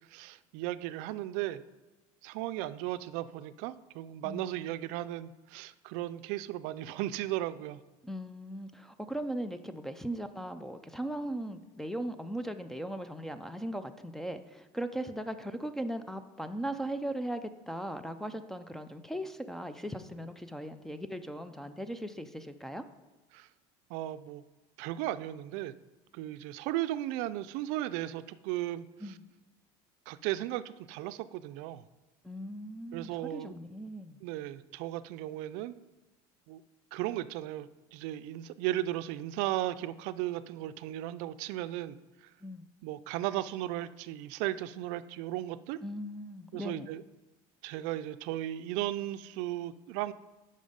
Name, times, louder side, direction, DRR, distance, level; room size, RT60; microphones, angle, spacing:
voice 1, 0.1-1.6 2.2-7.8 23.3-23.5 23.9-24.4 24.8-25.7 26.1-29.1 30.1-31.8 32.9-33.5 34.2-35.7 36.5-36.6 36.9-42.0 42.8-45.8 46.5-47.0 47.6-50.1, right 14 dB, 75° right, 13 dB, 0.4 m, -36 dB
voice 2, 8.0-22.8 29.0-29.2 32.2-34.2 42.4-42.7 45.8-46.9, right 1 dB, 5° left, 10 dB, 0.3 m, -38 dB
9.3 x 5.3 x 5.0 m, 1.1 s
cardioid pair, 150°, 13 cm